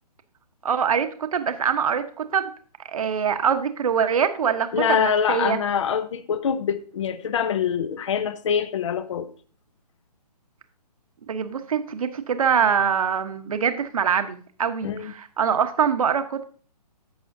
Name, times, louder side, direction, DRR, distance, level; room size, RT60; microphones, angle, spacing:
voice 1, 0.6-2.5 2.8-5.6 11.3-16.4, right 7 dB, 55° right, 1.1 m, -24 dB
voice 2, 4.7-9.3 14.8-15.1, left 7 dB, 45° left, 0.8 m, -24 dB
14.0 x 6.1 x 2.7 m
figure-of-eight pair, 135°, 21 cm